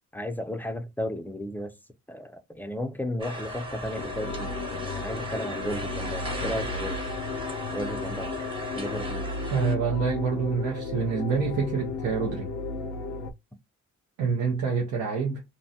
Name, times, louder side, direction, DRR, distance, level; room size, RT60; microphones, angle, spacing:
voice 1, 0.1-1.7 2.1-7.0 7.7-8.3 8.7-9.3, left 1 dB, 5° left, 0.4 m, -34 dB
sound 1, 3.2-9.7, equal, 15° right, 0.9 m, -37 dB
sound 2, 4.0-13.3, left 3 dB, 85° left, 0.5 m, -34 dB
voice 2, 9.5-12.5 14.2-15.4, right 5 dB, 90° right, 0.7 m, -27 dB
2.6 x 2.1 x 2.7 m
cardioid pair, 90°, 30 cm